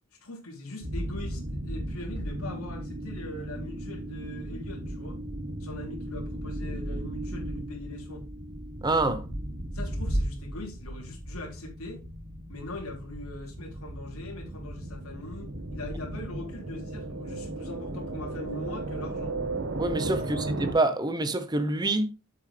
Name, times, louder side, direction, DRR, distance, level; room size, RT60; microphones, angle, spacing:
voice 1, 0.2-5.2 5.6-8.2 9.7-12.0 12.5-19.3 20.2-20.5, left 2 dB, 75° left, 3.3 m, -41 dB
sound 1, 0.8-20.7, right 1 dB, 55° right, 1.5 m, -35 dB
voice 2, 8.8-9.2 19.8-22.1, right 2 dB, 20° right, 0.9 m, -26 dB
8.0 x 7.6 x 3.3 m
head